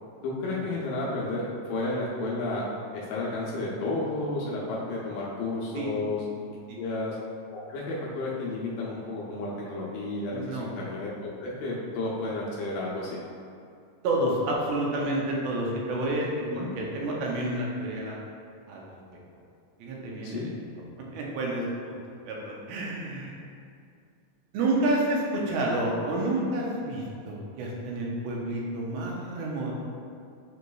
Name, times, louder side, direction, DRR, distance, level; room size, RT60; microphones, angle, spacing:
voice 1, 0.2-2.7 2.9-7.2 7.5-13.2 16.4-16.7 20.2-20.5, left 2 dB, 75° left, -5 dB, 2.1 m, -32 dB
voice 2, 10.3-10.7 14.0-18.2 18.7-18.8 19.8-20.5 21.1-21.6 22.3-23.4 24.5-29.9, right 1 dB, 90° right, -2 dB, 2.5 m, -29 dB
7.7 x 3.0 x 2.3 m, 2.4 s
omnidirectional pair, 4.2 m